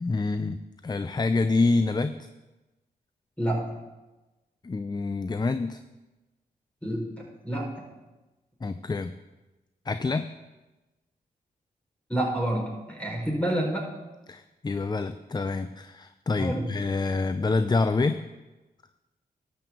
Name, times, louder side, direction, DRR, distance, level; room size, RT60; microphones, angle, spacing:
voice 1, 0.0-2.1 4.6-5.8 8.6-9.1 9.9-10.3 14.3-18.2, left 3 dB, 25° left, 11 dB, 0.5 m, -27 dB
voice 2, 3.4-3.7 6.8-7.1 7.4-7.8 12.1-13.9 16.4-16.7, right 1 dB, 5° left, -1 dB, 4.4 m, -28 dB
12.5 x 5.3 x 7.4 m, 1.1 s
supercardioid pair, 45°, 18 cm